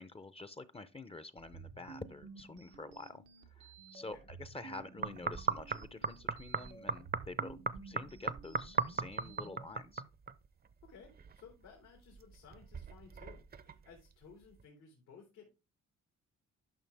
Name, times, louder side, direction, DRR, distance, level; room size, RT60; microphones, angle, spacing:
voice 1, 0.0-10.0, left 2 dB, 20° left, 0.6 m, -48 dB
sound 1, 1.4-9.6, right 5 dB, 90° right, 1.2 m, -54 dB
sound 2, 5.0-10.5 10.7-11.7 12.1-14.0 14.6-14.7, right 4 dB, 30° right, 0.7 m, -37 dB
voice 2, 10.8-15.5, left 6 dB, 90° left, 3.0 m, -57 dB
11.0 x 5.7 x 3.4 m
cardioid pair, 90°, 30 cm